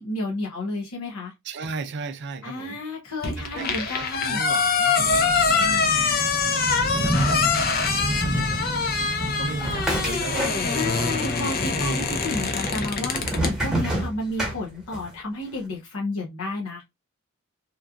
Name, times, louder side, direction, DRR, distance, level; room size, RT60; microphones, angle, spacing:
voice 1, 0.0-1.3 2.4-4.4 10.7-16.8, left 2 dB, 85° left, 0.8 m, -31 dB
voice 2, 1.4-2.8 3.4-6.3 6.9-7.4 8.2-11.2, right 3 dB, 55° right, 0.4 m, -36 dB
sound 1, 3.2-13.5, left 5 dB, 45° left, 0.6 m, -24 dB
Thunder / Rain, 4.9-13.8, right 1 dB, 20° right, 1.0 m, -31 dB
sound 2, 9.6-11.0 11.3-12.0 12.7-15.1, right 1 dB, 5° right, 1.2 m, -28 dB
2.9 x 2.4 x 2.3 m
head